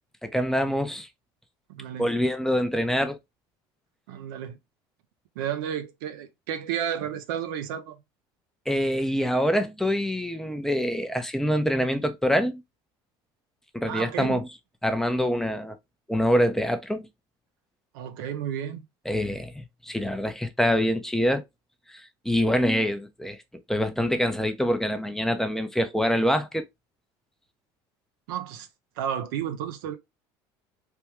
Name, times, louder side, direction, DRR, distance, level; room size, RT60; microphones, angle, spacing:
voice 1, 0.2-1.1 2.0-3.2 8.7-12.6 13.7-14.5 14.8-15.8 16.1-17.1 19.1-21.4 21.9-23.4 23.7-26.7, equal, 5° left, 0.5 m, -25 dB
voice 2, 1.7-2.1 4.1-4.6 5.4-8.0 13.9-14.4 17.9-18.9 28.3-28.7 29.0-30.0, right 9 dB, 90° right, 0.6 m, -32 dB
3.4 x 2.2 x 3.0 m
supercardioid pair, 100°, 11 cm